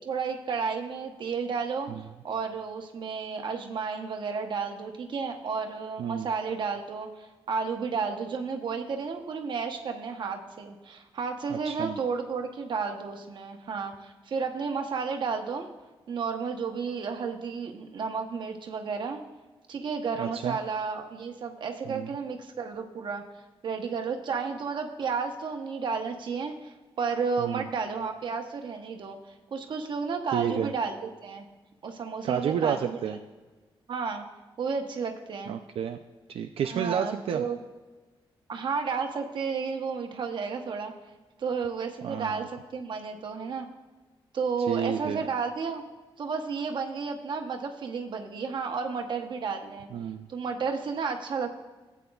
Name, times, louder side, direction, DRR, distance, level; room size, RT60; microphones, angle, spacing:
voice 1, 0.0-15.7 16.1-19.2 19.7-23.2 23.6-31.5 31.8-33.0 33.9-34.2 34.6-35.5 36.6-37.6 38.5-40.9 41.4-43.7 44.3-45.8 46.2-49.9 50.3-51.5, right 5 dB, 55° right, 4 dB, 0.9 m, -32 dB
voice 2, 11.5-12.0 20.2-20.6 21.9-22.1 27.4-27.6 30.3-30.7 32.2-33.2 35.5-36.0 36.3-37.5 42.0-42.5 44.7-45.3 49.9-50.3, right 8 dB, 80° right, 5 dB, 0.4 m, -30 dB
16.0 x 8.3 x 2.3 m, 1.3 s
wide cardioid pair, 175°, 10 cm